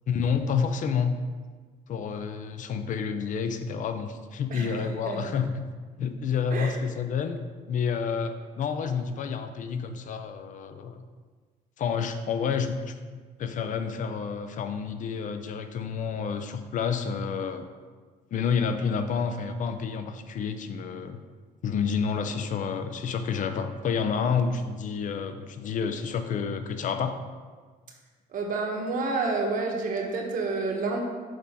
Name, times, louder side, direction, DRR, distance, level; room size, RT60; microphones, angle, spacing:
voice 1, 0.1-1.1 1.9-5.6 6.0-7.4 7.7-11.0 11.8-12.9 13.4-17.6 18.3-21.2 21.6-27.2, left 6 dB, 50° left, 9 dB, 0.6 m, -29 dB
voice 2, 4.5-5.3 6.5-6.8 28.3-31.0, right 3 dB, 55° right, 1 dB, 1.2 m, -29 dB
6.4 x 3.5 x 5.6 m, 1.5 s
cardioid pair, 110°, 17 cm